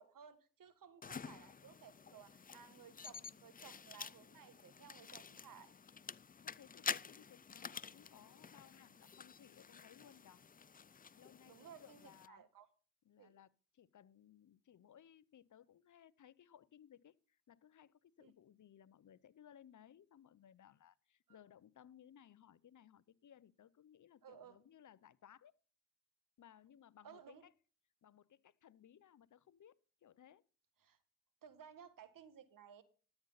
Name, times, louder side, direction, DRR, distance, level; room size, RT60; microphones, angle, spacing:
voice 1, 0.0-5.7 11.5-12.0 12.3-12.7 13.2-13.3 18.2-18.3 21.3-21.4 24.2-24.6 27.0-27.4 30.8-31.0 31.4-32.8, right 8 dB, 70° right, 1.6 m, -58 dB
sound 1, 1.0-12.3, left 6 dB, 25° left, 0.5 m, -49 dB
voice 2, 6.4-10.4 11.2-12.4 13.0-25.5 26.4-27.5 28.0-30.4, left 9 dB, 60° left, 0.8 m, -62 dB
13.5 x 8.0 x 4.1 m
supercardioid pair, 50°, 34 cm